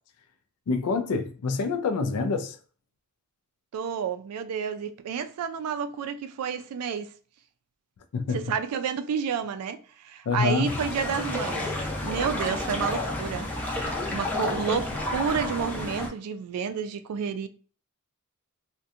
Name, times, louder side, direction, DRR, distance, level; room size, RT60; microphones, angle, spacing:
voice 1, 0.7-2.6 8.1-8.5 10.3-10.7, left 4 dB, 75° left, 0.4 m, -26 dB
voice 2, 3.7-7.1 8.3-9.8 10.0-11.7 12.0-17.5, right 7 dB, 80° right, 0.3 m, -30 dB
sound 1, 10.6-16.1, left 1 dB, 5° left, 0.5 m, -31 dB
2.6 x 2.2 x 2.4 m
head